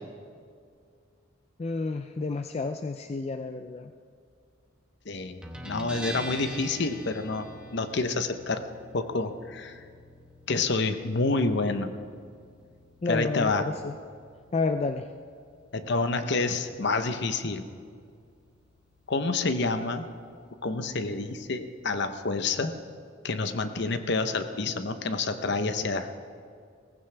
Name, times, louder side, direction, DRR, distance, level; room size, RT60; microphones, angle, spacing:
voice 1, 1.6-3.9 13.0-13.9 14.5-15.1, left 3 dB, 30° left, 8 dB, 0.3 m, -30 dB
voice 2, 5.0-7.5 7.7-8.6 8.9-9.8 10.5-11.9 13.1-13.7 15.7-17.6 19.1-20.1 20.6-22.7 23.2-26.3, left 3 dB, 55° left, 9 dB, 0.8 m, -28 dB
Guitar, 5.4-22.6, right 1 dB, 5° right, 1.0 m, -47 dB
18.5 x 15.0 x 3.3 m, 2.2 s
head